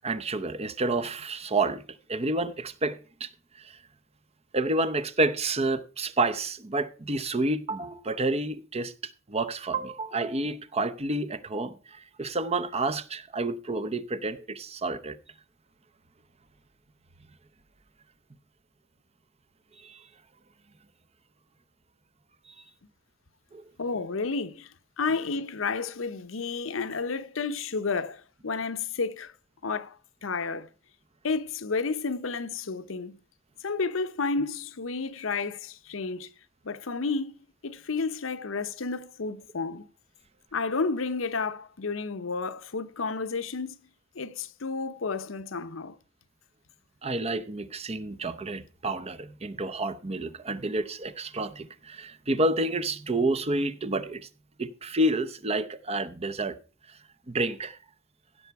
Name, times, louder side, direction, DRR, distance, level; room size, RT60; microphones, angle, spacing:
voice 1, 0.0-1.8 2.1-3.3 3.6-3.8 4.5-15.2 19.8-20.0 23.5-23.7 47.0-54.3 54.6-56.6 57.3-57.8, right 2 dB, 30° right, 0.8 m, -29 dB
voice 2, 23.8-24.7 25.0-29.3 29.6-30.0 30.2-30.7 31.2-33.2 33.6-36.3 36.6-37.3 37.6-39.8 40.5-43.8 44.1-46.0, left 4 dB, 80° left, 0.8 m, -31 dB
16.0 x 6.8 x 4.7 m
head